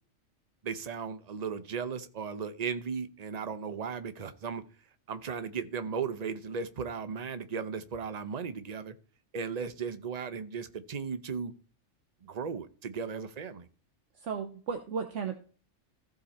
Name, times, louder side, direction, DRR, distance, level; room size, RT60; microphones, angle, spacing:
voice 1, 0.6-4.6 5.1-8.9 9.3-11.5 12.2-13.7, right 6 dB, 40° right, 12 dB, 0.7 m, -36 dB
voice 2, 14.2-15.4, right 6 dB, 70° right, 5 dB, 1.2 m, -34 dB
14.5 x 5.0 x 4.2 m, 0.40 s
omnidirectional pair, 1.3 m